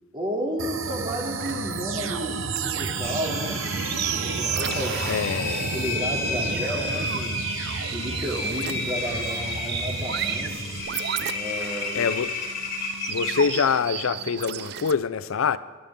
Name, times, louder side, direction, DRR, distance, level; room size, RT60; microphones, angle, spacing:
voice 1, 0.1-3.6 4.2-5.1 5.5-7.4 7.9-10.8 11.3-12.1, equal, 25° right, 2.7 m, -32 dB
sound 1, 0.6-14.9, right 10 dB, 50° right, 0.5 m, -35 dB
sound 2, 0.6-10.8, right 4 dB, 70° right, 1.0 m, -32 dB
Engine, 3.0-13.9, left 3 dB, 50° left, 2.8 m, -32 dB
voice 2, 5.1-5.7 11.9-12.4 13.1-15.6, left 6 dB, 80° left, 0.5 m, -25 dB
22.5 x 11.5 x 3.7 m
head